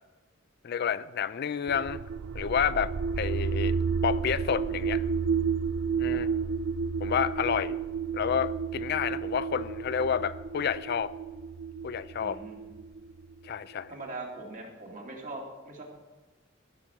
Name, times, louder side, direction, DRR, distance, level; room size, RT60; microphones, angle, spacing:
voice 1, 0.6-2.0 2.3-3.7 4.0-5.0 6.0-6.3 7.0-7.8 8.1-11.1 11.8-12.4 13.4-13.9, left 7 dB, 55° left, 15 dB, 0.4 m, -29 dB
sound 1, 1.7-13.5, right 5 dB, 85° right, 0.4 m, -31 dB
voice 2, 12.2-12.6 13.9-15.8, right 2 dB, 40° right, -1 dB, 2.6 m, -41 dB
14.5 x 6.1 x 7.2 m, 1.2 s
head